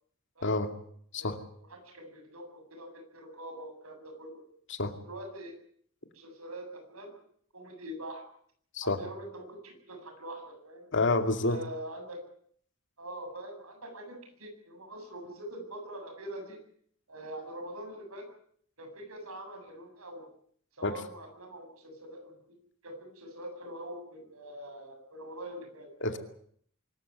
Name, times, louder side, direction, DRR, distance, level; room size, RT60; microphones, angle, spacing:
voice 1, 0.4-0.7 1.1-1.4 4.7-4.9 8.7-9.0 10.9-11.6 20.8-21.0 26.0-26.2, left 2 dB, 60° left, 7 dB, 2.4 m, -28 dB
voice 2, 1.7-4.4 5.0-5.6 6.1-7.2 7.5-8.2 8.8-10.9 11.4-12.2 13.0-16.6 17.1-18.3 18.8-20.3 20.7-22.6 22.8-26.2, right 1 dB, 90° right, 5 dB, 7.8 m, -44 dB
24.5 x 14.5 x 9.6 m, 0.63 s
head